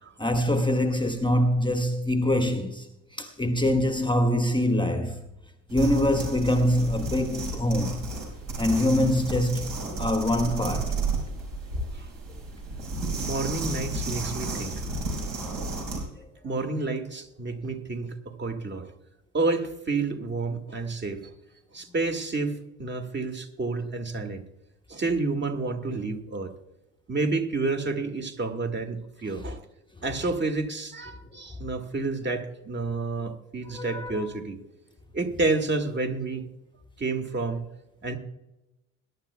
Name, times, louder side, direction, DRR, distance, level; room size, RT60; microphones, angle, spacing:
voice 1, 0.2-2.9 3.1-5.2 5.7-8.1 8.6-9.7 10.0-10.9 33.7-34.3, left 1 dB, 10° left, 1.1 m, -24 dB
sound 1, 5.7-16.1, right 2 dB, 65° right, 5.2 m, -32 dB
voice 2, 13.2-14.8 16.4-18.9 19.3-21.3 21.7-24.5 24.9-26.5 27.1-29.6 30.0-34.6 35.1-36.5 37.0-37.7 38.0-38.2, right 3 dB, 30° right, 1.9 m, -30 dB
21.5 x 11.0 x 2.3 m
figure-of-eight pair, 55°, 39 cm